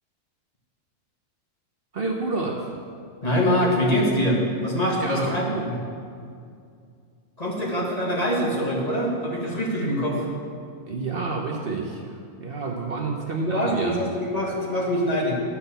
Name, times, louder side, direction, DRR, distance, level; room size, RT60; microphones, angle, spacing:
voice 1, 1.9-2.7 5.0-5.7 10.9-12.1 12.4-14.0, right 3 dB, 50° right, 0 dB, 1.0 m, -29 dB
voice 2, 3.2-5.8 7.4-10.3 13.5-15.4, equal, 30° left, -3 dB, 1.7 m, -24 dB
11.5 x 5.8 x 6.8 m, 2.3 s
omnidirectional pair, 1.4 m